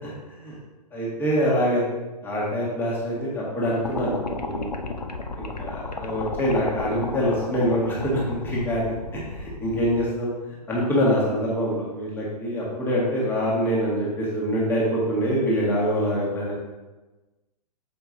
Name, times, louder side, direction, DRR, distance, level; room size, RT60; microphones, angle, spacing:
voice 1, 0.9-1.8 2.2-4.7 5.4-10.3 10.7-16.5, equal, 10° left, -6 dB, 1.7 m, -25 dB
sound 1, 3.8-10.0, left 3 dB, 80° left, 0.7 m, -33 dB
7.0 x 5.2 x 2.6 m, 1.2 s
figure-of-eight pair, 115°, 21 cm